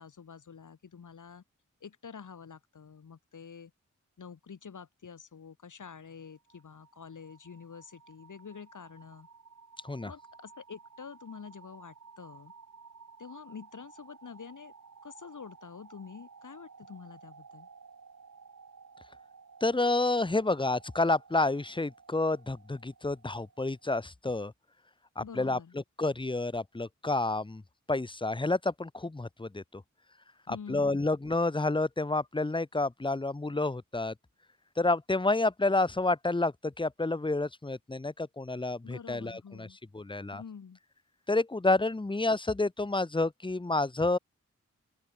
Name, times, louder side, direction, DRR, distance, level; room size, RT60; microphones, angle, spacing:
voice 1, 0.0-1.4 1.8-3.7 4.2-9.3 10.0-12.5 13.2-14.7 15.0-17.7 25.2-25.7 30.5-31.1 38.8-39.8 40.3-40.8, left 6 dB, 80° left, 5.0 m, -47 dB
sound 1, 6.1-23.9, right 5 dB, 65° right, 7.2 m, -55 dB
voice 2, 19.6-24.5 25.2-25.6 26.0-27.6 27.9-29.8 30.5-34.1 34.8-39.7 39.9-40.4 41.3-44.2, left 2 dB, 15° left, 0.9 m, -29 dB
open air
cardioid pair, 50°, 30 cm